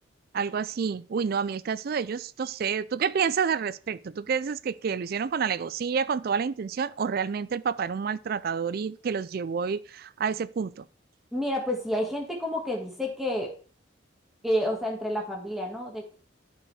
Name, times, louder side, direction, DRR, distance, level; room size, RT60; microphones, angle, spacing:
voice 1, 0.3-10.8, right 6 dB, 50° right, 0.4 m, -29 dB
voice 2, 11.3-13.5 14.4-16.2, equal, ahead, 1.7 m, -29 dB
11.0 x 5.2 x 4.7 m
head